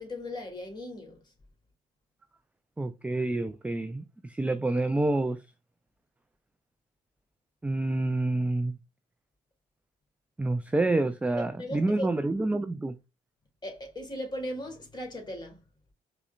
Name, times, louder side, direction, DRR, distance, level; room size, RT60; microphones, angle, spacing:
voice 1, 0.0-1.3 11.6-12.1 13.6-15.6, left 1 dB, 20° left, 1.7 m, -37 dB
voice 2, 2.8-5.4 7.6-8.8 10.4-13.0, right 2 dB, 5° right, 0.3 m, -28 dB
4.8 x 2.1 x 2.4 m
hypercardioid pair, 50°, 20 cm